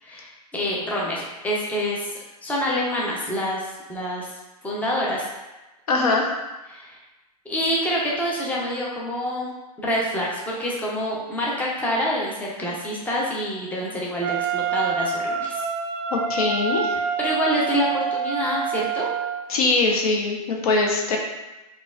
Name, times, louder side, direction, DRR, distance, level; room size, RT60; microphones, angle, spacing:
voice 1, 0.0-2.1 2.4-4.3 4.6-5.3 6.7-7.0 7.5-9.5 9.8-15.7 17.2-19.1, equal, 10° left, -4 dB, 0.6 m, -26 dB
voice 2, 5.9-6.4 16.1-17.0 19.5-21.2, left 3 dB, 65° left, 0 dB, 0.7 m, -22 dB
Wind instrument woodwind instrument, 14.2-19.5, right 6 dB, 50° right, 0.4 m, -26 dB
3.9 x 2.4 x 2.3 m, 1.1 s
hypercardioid pair, 110°, 20 cm